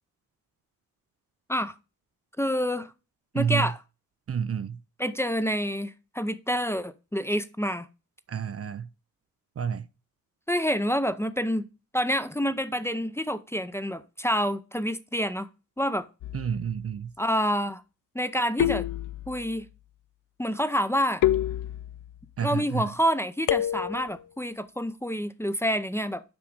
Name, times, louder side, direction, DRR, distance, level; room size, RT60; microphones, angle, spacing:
voice 1, 2.4-2.9 3.3-3.8 5.0-7.9 10.5-11.6 11.9-15.5 15.8-16.0 17.2-17.8 18.1-18.9 19.3-19.7 20.4-21.2 22.4-26.2, equal, 5° left, 0.6 m, -27 dB
voice 2, 3.3-3.7 4.3-4.8 8.3-8.9 9.6-9.9 16.3-17.1 22.4-22.9, right 7 dB, 40° right, 0.5 m, -29 dB
sound 1, 16.2-16.7 18.6-19.5 21.2-22.2 23.5-24.2, left 12 dB, 60° left, 0.4 m, -28 dB
6.1 x 4.8 x 6.4 m
cardioid pair, 75°, 36 cm